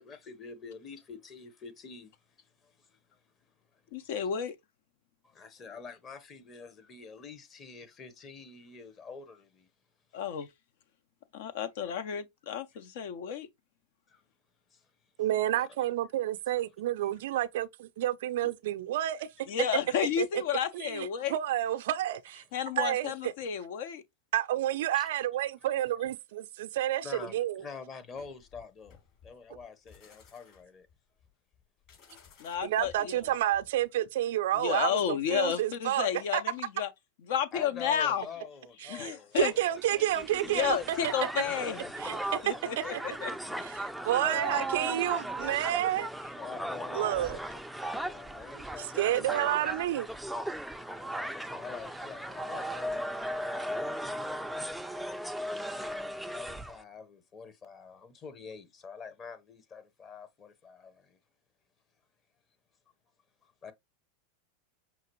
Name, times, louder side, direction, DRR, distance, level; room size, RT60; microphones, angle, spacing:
voice 1, 0.0-3.2 3.7-4.3 5.2-9.7 14.1-14.2 14.7-14.9 15.5-15.7 17.0-17.1 24.9-25.1 27.0-29.0 29.2-30.9 37.5-40.0 41.4-44.0 44.3-45.0 45.7-45.8 46.3-47.4 48.1-49.7 50.9-54.5 55.6-61.2 63.4-63.7, left 5 dB, 30° left, 0.9 m, -47 dB
voice 2, 3.9-4.5 10.1-10.5 11.3-13.5 19.5-21.4 22.5-24.0 32.4-33.3 34.6-36.9 37.3-38.2 38.9-39.5 40.5-41.8 42.4-43.3, left 9 dB, 65° left, 0.6 m, -32 dB
voice 3, 15.2-19.3 20.2-20.3 20.7-22.4 22.8-23.3 24.3-27.6 32.6-36.4 38.8-40.8 41.0-41.1 42.0-42.2 42.8-42.9 43.6-43.7 44.0-46.1 46.9-47.4 48.8-50.1, right 13 dB, 70° right, 0.4 m, -30 dB
sound 1, 28.1-33.8, left 7 dB, 50° left, 2.9 m, -58 dB
Crowd, 39.4-56.8, right 1 dB, ahead, 0.4 m, -37 dB
5.7 x 2.5 x 3.0 m
hypercardioid pair, 95°, 0 cm